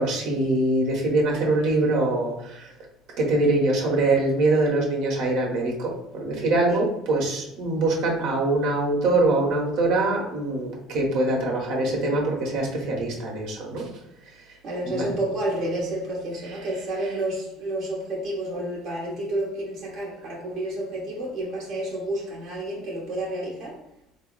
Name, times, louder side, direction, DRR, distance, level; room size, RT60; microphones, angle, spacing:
voice 1, 0.0-2.7 3.2-13.9 14.8-15.2 16.4-17.1, right 2 dB, 70° right, 1.1 m, -24 dB
voice 2, 14.6-23.8, right 1 dB, 50° right, 0.9 m, -30 dB
3.8 x 2.0 x 3.9 m
supercardioid pair, 110°, 0 cm